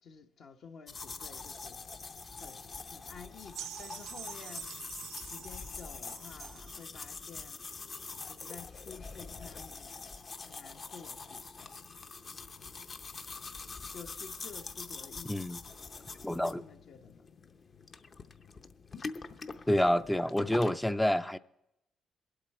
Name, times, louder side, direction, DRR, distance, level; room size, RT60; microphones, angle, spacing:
voice 1, 0.0-4.9 5.2-7.6 8.2-10.1 10.4-11.8 13.9-15.6 16.2-17.3 18.5-18.6, left 6 dB, 65° left, 1.0 m, -52 dB
sound 1, 0.9-20.7, left 4 dB, 40° left, 0.7 m, -45 dB
sound 2, 3.5-6.8 7.7-7.8, right 10 dB, 85° right, 0.5 m, -46 dB
voice 2, 15.2-15.6 16.2-16.6 19.7-21.4, left 1 dB, 5° left, 0.4 m, -28 dB
21.0 x 8.2 x 4.2 m
cardioid pair, 90°, 0 cm